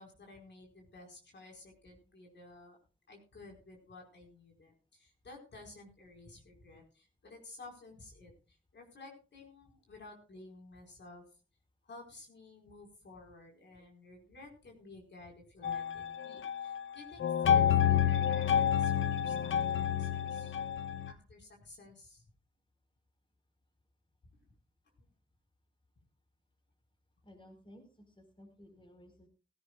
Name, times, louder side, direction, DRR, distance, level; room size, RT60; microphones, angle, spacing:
voice 1, 0.0-2.8 3.1-11.2 11.8-20.6 21.1-22.2 25.0-25.1, left 2 dB, 60° left, 1 dB, 4.7 m, -54 dB
sound 1, 15.6-16.8 17.2-21.1, left 9 dB, 75° left, 0.8 m, -29 dB
voice 2, 27.2-29.3, equal, 25° left, 4 dB, 4.6 m, -57 dB
17.0 x 16.0 x 2.4 m, 0.32 s
cardioid pair, 85°, 20 cm